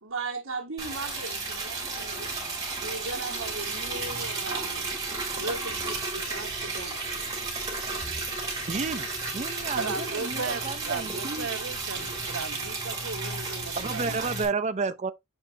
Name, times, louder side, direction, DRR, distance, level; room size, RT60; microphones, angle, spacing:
voice 1, 0.0-2.3 2.8-4.9 5.3-7.0, right 3 dB, 70° right, 1.7 m, -37 dB
Liquid, 0.8-14.4, right 3 dB, 20° right, 3.1 m, -33 dB
voice 2, 8.7-9.1 9.3-11.5 13.8-15.1, right 4 dB, 35° right, 0.5 m, -31 dB
voice 3, 9.8-14.3, right 4 dB, 85° right, 1.0 m, -36 dB
7.2 x 5.4 x 2.8 m
head